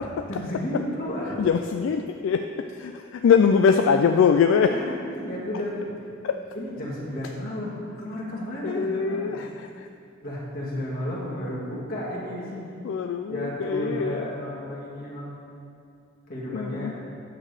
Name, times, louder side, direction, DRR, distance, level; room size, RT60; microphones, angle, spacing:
voice 1, 0.3-1.4 4.7-5.8 6.5-9.4 10.2-12.8 13.3-15.4 16.3-17.0, left 1 dB, 50° left, -6 dB, 1.9 m, -33 dB
voice 2, 1.4-4.7 6.2-6.4 8.6-9.9 12.8-14.3 16.5-16.9, left 6 dB, 70° left, 6 dB, 0.3 m, -23 dB
8.9 x 3.9 x 6.6 m, 2.6 s
head